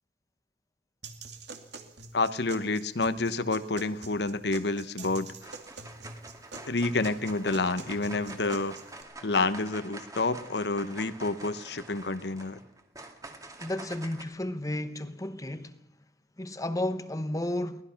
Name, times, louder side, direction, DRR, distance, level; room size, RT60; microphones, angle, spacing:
sound 1, 1.0-9.0, right 3 dB, 65° right, 2.5 m, -45 dB
voice 1, 2.1-5.5 6.7-8.7 9.2-12.6, left 3 dB, 65° left, 1.0 m, -29 dB
sound 2, 4.8-5.1 5.4-14.2, right 2 dB, 20° right, 2.2 m, -46 dB
voice 2, 13.6-15.8 16.4-17.8, left 1 dB, 20° left, 1.0 m, -32 dB
23.5 x 19.0 x 5.9 m
head